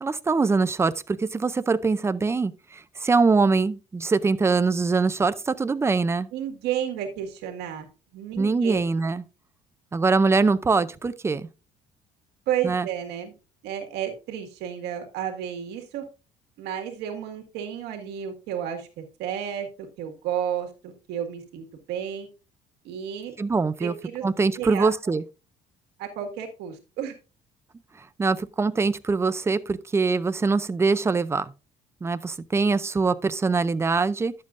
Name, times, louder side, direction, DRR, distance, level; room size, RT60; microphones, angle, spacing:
voice 1, 0.0-6.3 8.4-9.2 9.9-11.5 12.6-12.9 23.4-23.9 24.2-25.2 28.2-31.5 32.0-34.3, right 4 dB, 15° right, 0.5 m, -23 dB
voice 2, 6.3-7.9 8.1-8.8 12.5-13.3 13.6-16.0 16.6-22.3 22.8-23.3 23.8-24.2 24.6-25.1 26.0-27.2, right 9 dB, 85° right, 1.9 m, -32 dB
11.0 x 7.5 x 2.5 m
cardioid pair, 125°, 17 cm